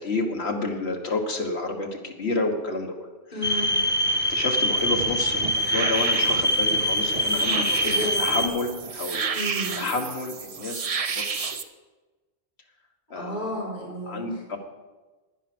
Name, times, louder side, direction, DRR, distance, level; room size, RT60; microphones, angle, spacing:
voice 1, 0.0-2.9 3.4-3.7 4.2-9.3 9.8-10.8 11.2-11.6 13.1-13.7 14.1-14.6, left 3 dB, 85° left, 2 dB, 1.8 m, -30 dB
voice 2, 3.3-3.8 7.8-8.4 9.3-9.8 13.1-14.2, left 1 dB, 50° left, -4 dB, 4.2 m, -32 dB
sound 1, 3.4-8.5, equal, 10° left, 0.7 m, -24 dB
sound 2, 4.8-11.6, right 5 dB, 40° right, 0.6 m, -31 dB
10.5 x 10.5 x 6.1 m, 1.2 s
omnidirectional pair, 1.1 m